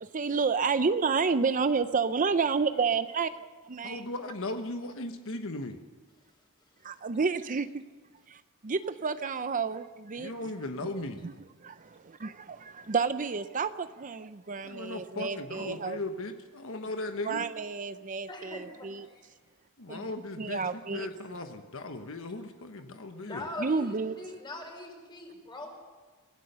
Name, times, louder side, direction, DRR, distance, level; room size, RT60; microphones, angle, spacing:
voice 1, 0.0-3.3 3.7-4.0 6.8-7.8 8.3-10.3 11.2-11.3 11.6-16.0 17.2-19.0 19.9-20.1 20.4-21.1 23.6-24.2, right 5 dB, 35° right, 11 dB, 0.6 m, -30 dB
voice 2, 3.8-5.8 10.2-11.2 14.6-17.4 19.8-20.6 20.9-23.4, left 2 dB, 65° left, 6 dB, 1.3 m, -37 dB
voice 3, 18.3-19.3 23.2-25.8, left 2 dB, 20° left, 2 dB, 4.7 m, -42 dB
26.5 x 16.5 x 6.9 m, 1.4 s
head